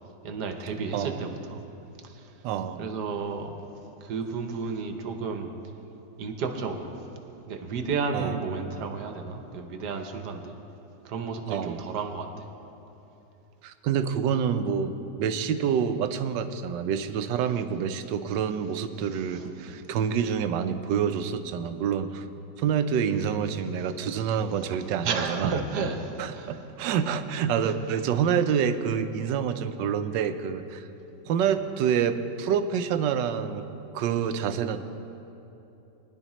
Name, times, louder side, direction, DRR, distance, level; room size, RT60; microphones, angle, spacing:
voice 1, 0.2-1.6 2.0-2.3 2.8-3.5 4.0-5.5 6.2-7.0 7.5-10.6 11.0-12.3 19.1-19.5 23.8-24.4 25.0-26.6 27.6-27.7, right 5 dB, 70° right, 5 dB, 1.4 m, -32 dB
voice 2, 0.9-1.3 2.4-2.8 8.1-8.4 11.5-11.8 13.6-22.2 22.6-25.6 26.2-30.9 31.3-33.6 33.9-34.8, right 7 dB, 90° right, 10 dB, 1.3 m, -27 dB
20.0 x 10.5 x 3.0 m, 2.9 s
omnidirectional pair, 1.9 m